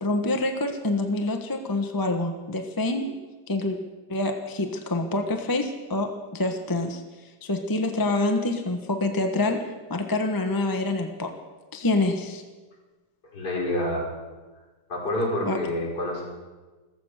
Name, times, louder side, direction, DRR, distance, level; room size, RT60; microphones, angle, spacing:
voice 1, 0.0-3.1 3.5-3.8 4.1-7.0 7.4-9.6 9.9-11.3 11.7-12.4 15.5-15.6, left 2 dB, 15° left, 4 dB, 0.8 m, -26 dB
voice 2, 13.3-14.1 14.9-16.2, left 1 dB, 50° left, -4 dB, 5.9 m, -27 dB
15.5 x 14.0 x 6.5 m, 1.3 s
omnidirectional pair, 2.3 m